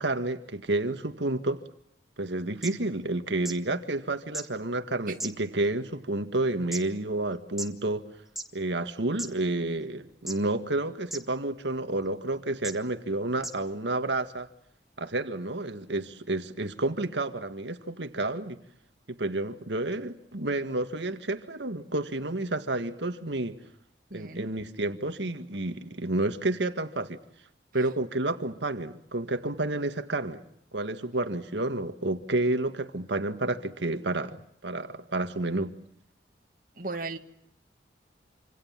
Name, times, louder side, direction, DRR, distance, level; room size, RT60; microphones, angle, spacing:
voice 1, 0.0-1.6 2.2-8.1 8.5-14.5 15.0-18.6 19.1-23.6 24.1-27.2 27.7-30.4 30.7-35.7, right 2 dB, 80° right, 1.9 m, -30 dB
sound 1, 2.6-2.7 3.4-3.5 4.3-4.4 5.2-5.7 6.3-6.8 7.6-7.7 8.3-8.5 9.2-9.3 10.3-10.6 11.1-11.2 12.0-12.1 12.6-12.7 13.4-13.5 14.4-14.5, right 2 dB, ahead, 2.3 m, -35 dB
voice 2, 24.1-24.5 36.8-37.2, right 3 dB, 50° right, 2.1 m, -35 dB
27.0 x 27.0 x 7.5 m
head